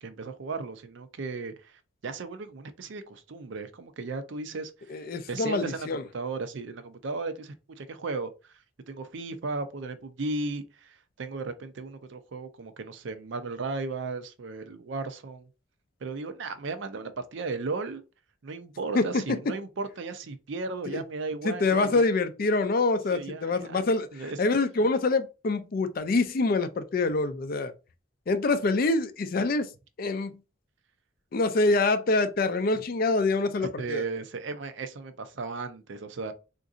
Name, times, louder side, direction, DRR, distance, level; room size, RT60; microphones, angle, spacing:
voice 1, 0.0-5.0 5.3-5.9 6.1-8.3 8.9-15.5 16.0-18.0 18.4-22.1 23.1-23.8 24.1-24.4 32.7-32.8 33.6-36.3, right 3 dB, 60° right, 0.5 m, -35 dB
voice 2, 4.9-6.0 18.9-19.1 20.9-21.0 21.4-24.1 24.4-27.7 28.3-29.7 30.0-30.4 31.3-34.0, left 3 dB, 45° left, 0.4 m, -25 dB
3.8 x 2.5 x 2.4 m
head